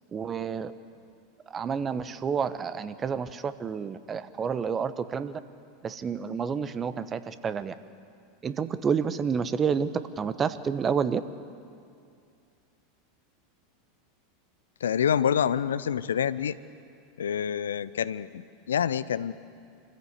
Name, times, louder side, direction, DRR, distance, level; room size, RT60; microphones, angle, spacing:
voice 1, 0.1-0.7 1.5-5.4 5.8-7.7 8.4-9.9 10.2-11.2, right 6 dB, 25° right, 12 dB, 1.0 m, -29 dB
voice 2, 14.8-16.6 17.2-19.3, left 8 dB, 75° left, 16 dB, 0.6 m, -27 dB
25.5 x 15.0 x 8.3 m, 2.4 s
figure-of-eight pair, 85°, 0 cm